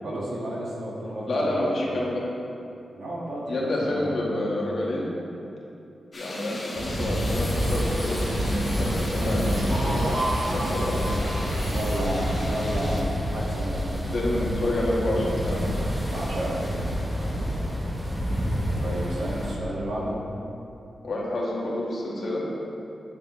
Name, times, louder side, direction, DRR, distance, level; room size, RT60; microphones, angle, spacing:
voice 1, 0.0-1.5 2.9-4.5 9.7-10.3 11.1-14.0 16.0-16.6 18.8-20.2, right 1 dB, 90° right, -5 dB, 1.6 m, -32 dB
voice 2, 1.3-2.2 3.5-5.1 6.1-10.0 10.5-11.1 14.1-15.8 21.0-22.4, left 1 dB, 50° left, -4 dB, 1.4 m, -28 dB
sound 1, 6.1-13.0, left 1 dB, 30° left, 1.1 m, -38 dB
sound 2, 6.8-19.5, equal, 15° right, 0.8 m, -28 dB
sound 3, 7.3-12.5, right 1 dB, 75° right, 1.1 m, -33 dB
8.4 x 7.3 x 3.0 m, 2.8 s
wide cardioid pair, 180°, 0 cm